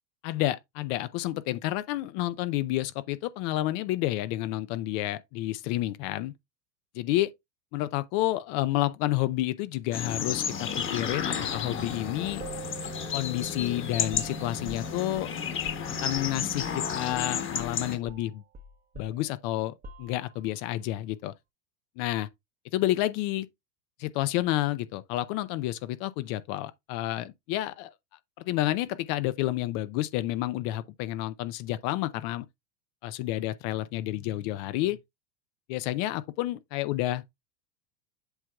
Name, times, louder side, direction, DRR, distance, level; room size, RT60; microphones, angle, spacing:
voice 1, 0.2-6.3 6.9-7.3 7.7-12.4 13.1-15.3 15.9-18.4 19.0-21.3 22.0-22.3 22.7-23.5 24.0-27.9 28.4-32.5 33.0-35.0 35.7-37.2, left 15 dB, 40° left, 0.6 m, -30 dB
sound 1, 9.9-18.0, left 7 dB, 25° left, 1.3 m, -32 dB
sound 2, 12.4-16.8 17.1-17.3 17.6-20.6, right 3 dB, 20° right, 0.9 m, -47 dB
7.9 x 5.7 x 2.3 m
supercardioid pair, 125°, 49 cm